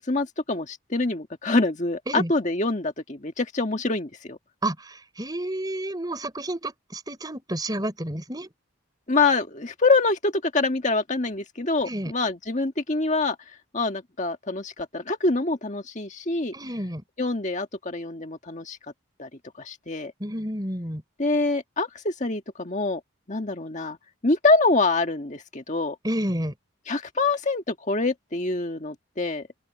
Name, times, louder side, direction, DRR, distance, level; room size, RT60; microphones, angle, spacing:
voice 1, 0.1-4.4 9.1-13.4 13.7-16.5 17.2-18.8 19.2-19.3 19.6-20.1 21.2-23.0 23.3-24.0 24.2-25.9 26.9-29.5, left 3 dB, 35° left, 1.7 m, -25 dB
voice 2, 4.6-8.5 11.8-12.1 16.5-17.0 20.2-21.0 26.0-26.5, right 1 dB, 20° right, 4.1 m, -30 dB
open air
head